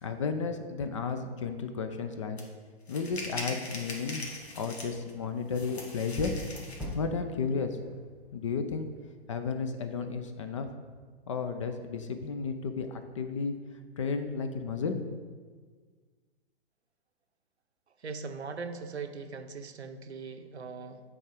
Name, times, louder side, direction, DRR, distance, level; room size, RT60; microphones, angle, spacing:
voice 1, 0.0-2.4 2.9-4.3 4.5-6.3 6.9-7.8 8.3-8.9 9.3-10.7 11.3-13.5 14.0-15.0, left 5 dB, 30° left, 8 dB, 0.4 m, -33 dB
sound 1, 2.4-2.5 2.9-5.1 5.5-6.9, left 2 dB, 75° left, 1.5 m, -41 dB
sound 2, 4.2-9.1, equal, 5° right, 0.7 m, -44 dB
voice 2, 18.0-21.0, right 4 dB, 85° right, 7 dB, 0.7 m, -40 dB
8.4 x 3.6 x 4.8 m, 1.5 s
figure-of-eight pair, 130°, 32 cm